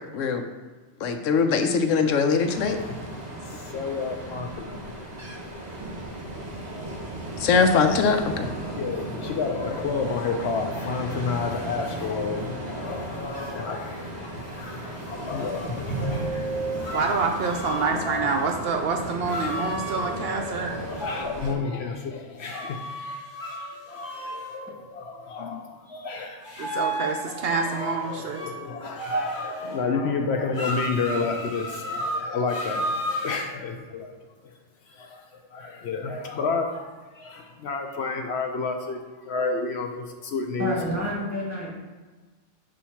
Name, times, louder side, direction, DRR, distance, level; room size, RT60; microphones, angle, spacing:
voice 1, 1.0-2.8 7.4-8.5, left 5 dB, 85° left, 6 dB, 1.0 m, -21 dB
Ocean, 2.4-21.5, right 1 dB, 35° right, 1.1 m, -36 dB
voice 2, 3.5-5.1 6.7-7.0 7.4-7.5 8.4-16.8 17.4-18.5 19.0-19.4 19.9-23.2 23.6-26.8 27.3-34.1 34.4-34.5 34.9-40.8, left 4 dB, 65° left, 4 dB, 0.8 m, -31 dB
sound 1, 15.7-18.4 19.3-21.3 22.4-24.6 26.4-28.5 29.0-29.8 30.6-33.4, equal, 45° left, 1.8 m, -32 dB
voice 3, 16.9-20.9 26.6-28.4, right 4 dB, 65° right, 3 dB, 0.7 m, -27 dB
voice 4, 40.6-41.7, equal, 15° right, -3 dB, 1.4 m, -28 dB
7.1 x 2.8 x 5.7 m, 1.3 s
omnidirectional pair, 1.3 m